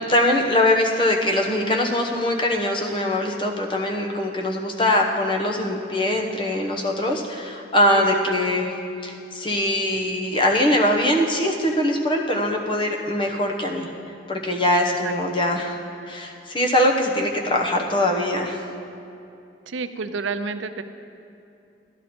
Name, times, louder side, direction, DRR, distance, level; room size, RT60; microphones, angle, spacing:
voice 1, 0.0-8.7 9.0-13.9 14.3-15.8 16.1-18.6, left 1 dB, 25° left, 1 dB, 0.9 m, -22 dB
voice 2, 7.9-8.5 15.0-15.1 19.7-20.8, right 4 dB, 85° right, 10 dB, 0.5 m, -30 dB
12.5 x 11.0 x 4.3 m, 2.7 s
head